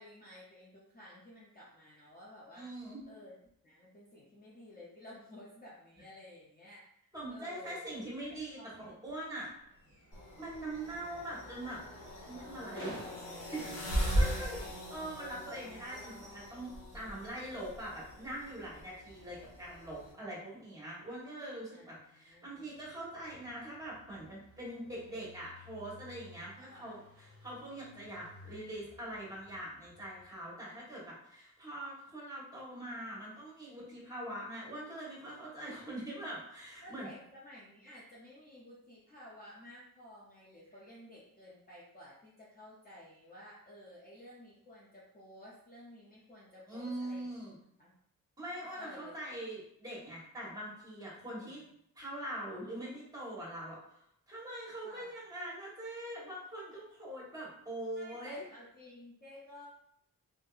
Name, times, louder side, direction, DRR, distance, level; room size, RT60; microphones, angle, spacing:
voice 1, 0.0-2.7 3.1-3.4 3.6-7.9 8.5-9.1 14.3-15.1 21.7-22.8 26.6-26.9 36.8-47.4 47.8-47.9 48.7-49.1 51.2-51.6 54.8-55.1 57.9-59.7, left 1 dB, 25° left, -6 dB, 0.5 m, -54 dB
voice 2, 2.5-3.0 7.1-8.6 9.0-9.5 10.4-11.8 12.2-13.2 13.5-13.8 14.1-14.6 14.9-37.1 46.7-47.5 48.4-51.7 51.9-53.8 54.3-58.4, right 1 dB, 10° right, -6 dB, 1.0 m, -43 dB
sound 1, 9.5-14.9, equal, 45° left, 1.5 m, -52 dB
sound 2, 10.1-20.1, equal, 85° left, 1.2 m, -39 dB
Engine, 22.5-30.5, left 4 dB, 60° left, 0.8 m, -59 dB
3.6 x 2.6 x 2.3 m, 0.72 s
wide cardioid pair, 180°, 35 cm